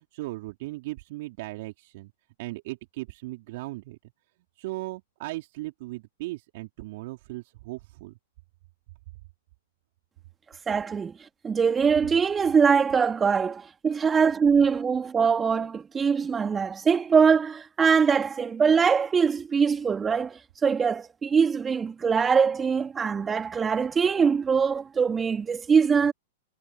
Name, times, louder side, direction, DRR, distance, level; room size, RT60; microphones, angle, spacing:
voice 1, 0.0-2.1 2.4-4.0 4.6-8.2, right 20 dB, 50° right, 3.5 m, -37 dB
voice 2, 10.7-11.1 11.4-26.1, right 6 dB, 15° right, 2.6 m, -23 dB
figure-of-eight pair, 105°, 0 cm